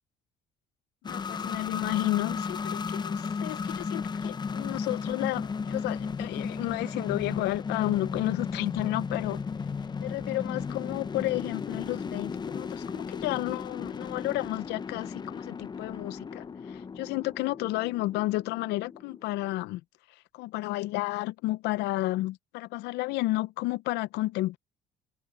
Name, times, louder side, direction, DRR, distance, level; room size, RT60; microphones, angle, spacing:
voice 1, 1.0-9.4 10.0-19.8 20.3-24.6, left 18 dB, 85° left, 0.6 m, -32 dB
sound 1, 1.0-19.5, left 5 dB, 25° left, 0.6 m, -35 dB
cardioid pair, 110°, 17 cm